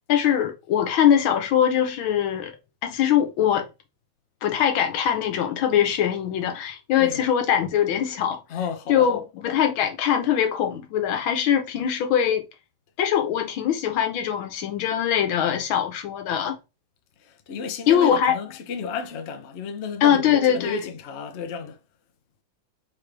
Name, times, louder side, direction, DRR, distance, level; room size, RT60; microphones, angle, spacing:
voice 1, 0.1-2.5 2.8-3.7 4.4-8.4 8.9-12.4 13.0-16.6 17.9-18.4 20.0-20.8, left 9 dB, 85° left, 1.7 m, -22 dB
voice 2, 7.0-7.3 8.5-9.1 17.2-21.8, left 5 dB, 65° left, 0.6 m, -33 dB
4.5 x 3.3 x 3.3 m
omnidirectional pair, 2.1 m